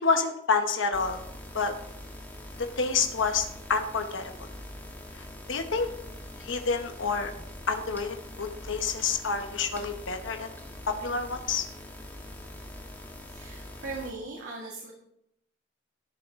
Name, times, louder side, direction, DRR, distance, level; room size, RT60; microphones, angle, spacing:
voice 1, 0.0-1.2 1.5-1.7 2.8-4.5 5.1-5.9 6.4-7.3 7.7-10.5 10.9-11.7, left 5 dB, 85° left, 6 dB, 1.0 m, -28 dB
sound 1, 0.9-14.1, left 1 dB, 10° left, 1.2 m, -43 dB
voice 2, 13.3-14.9, right 3 dB, 90° right, -4 dB, 2.3 m, -39 dB
13.0 x 8.4 x 3.6 m, 0.75 s
head